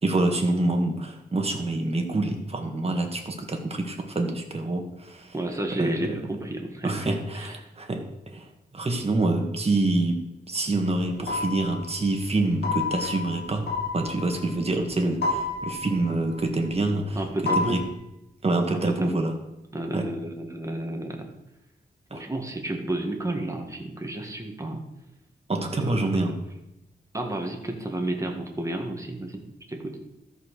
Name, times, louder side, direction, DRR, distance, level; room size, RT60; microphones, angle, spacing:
voice 1, 0.0-5.3 5.8-5.9 6.8-10.2 10.5-13.6 13.9-17.2 17.5-17.8 18.4-19.3 19.9-20.1 22.1-22.2 25.5-26.4, right 2 dB, 35° right, 3 dB, 1.7 m, -26 dB
voice 2, 5.3-6.9 7.4-7.5 17.1-17.8 19.0-19.2 19.7-21.2 22.1-24.8 25.8-26.1 27.1-29.4 29.7-30.0, right 1 dB, 20° right, 2 dB, 1.8 m, -31 dB
sound 1, 10.8-14.9 15.2-16.9 17.2-17.9, left 3 dB, 75° left, 2.8 m, -31 dB
13.0 x 5.5 x 6.5 m, 0.88 s
wide cardioid pair, 120°, 17 cm